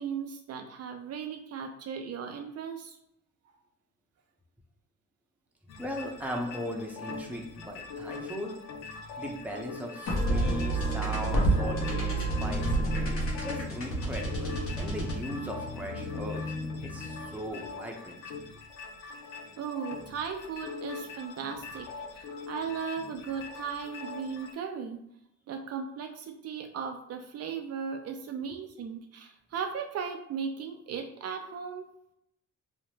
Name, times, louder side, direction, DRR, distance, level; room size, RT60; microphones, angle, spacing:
voice 1, 0.0-3.0 19.6-21.9 22.1-25.0 25.5-31.9, right 6 dB, 55° right, 4 dB, 0.4 m, -37 dB
sound 1, 5.7-24.5, left 4 dB, 85° left, 0.5 m, -43 dB
voice 2, 5.8-8.6 9.2-16.4 16.8-18.2 28.5-28.6, equal, 5° right, 1 dB, 0.6 m, -38 dB
sound 2, 10.1-17.4, right 1 dB, 50° left, 0.8 m, -30 dB
2.8 x 2.1 x 3.3 m, 0.79 s
cardioid pair, 90°, 30 cm